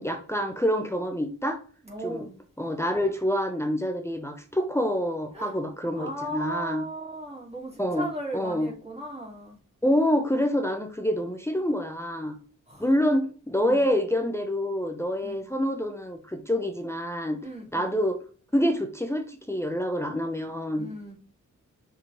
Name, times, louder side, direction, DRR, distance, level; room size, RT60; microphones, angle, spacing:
voice 1, 0.0-1.6 2.0-2.3 2.6-6.8 7.8-8.1 8.3-8.7 9.8-12.4 12.8-17.4 17.7-18.2 18.5-20.9, equal, 10° left, 0.9 m, -27 dB
voice 2, 1.8-2.3 5.3-5.5 5.9-9.6 12.7-12.8 13.6-13.9 15.2-15.4 17.4-18.0 20.7-21.1, right 1 dB, 20° right, 3.3 m, -37 dB
6.6 x 4.7 x 3.5 m
cardioid pair, 55°, 32 cm